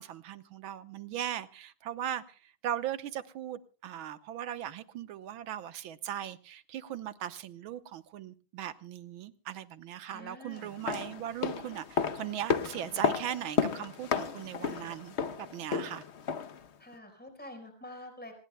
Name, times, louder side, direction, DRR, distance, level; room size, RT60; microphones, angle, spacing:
voice 1, 0.0-16.0, right 10 dB, 85° right, 1.8 m, -39 dB
voice 2, 10.1-10.8 14.6-15.0 16.8-18.3, left 1 dB, 5° left, 4.4 m, -47 dB
sound 1, 10.6-16.7 16.9-17.0, left 6 dB, 55° left, 0.7 m, -33 dB
26.5 x 20.0 x 2.2 m
omnidirectional pair, 2.2 m